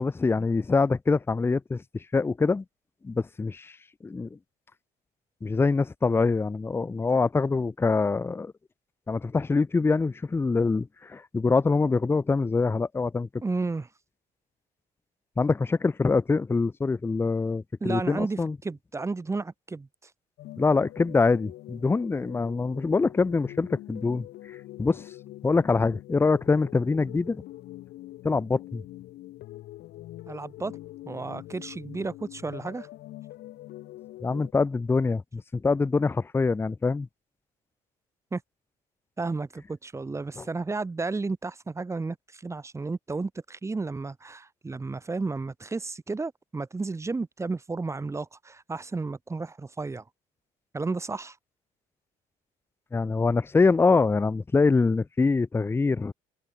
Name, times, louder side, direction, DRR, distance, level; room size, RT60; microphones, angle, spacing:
voice 1, 0.0-2.6 3.0-3.8 4.0-4.4 5.4-8.5 9.1-13.3 15.4-18.6 20.6-24.3 24.8-25.1 25.4-27.4 28.2-28.8 34.2-37.1 40.4-40.5 52.9-56.1, left 4 dB, 15° left, 0.5 m, -24 dB
voice 2, 13.4-13.9 17.8-19.9 30.3-30.8 31.1-32.9 38.3-38.4 39.2-50.0 50.7-51.4, right 3 dB, 15° right, 0.9 m, -32 dB
sound 1, 20.4-34.5, left 15 dB, 75° left, 1.9 m, -44 dB
cardioid pair, 110°, 17 cm